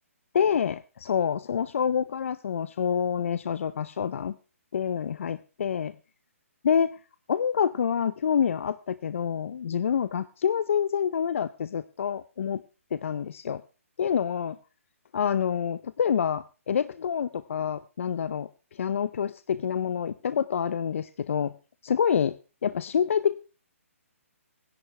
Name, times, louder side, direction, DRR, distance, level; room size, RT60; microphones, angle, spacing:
voice 1, 0.3-4.4 4.7-5.9 6.6-7.0 7.3-12.6 12.9-13.6 14.0-14.6 15.1-21.5 21.8-22.4 22.6-23.4, left 7 dB, 60° left, 15 dB, 0.6 m, -27 dB
19.0 x 11.0 x 3.3 m, 0.34 s
hypercardioid pair, 150°, 8 cm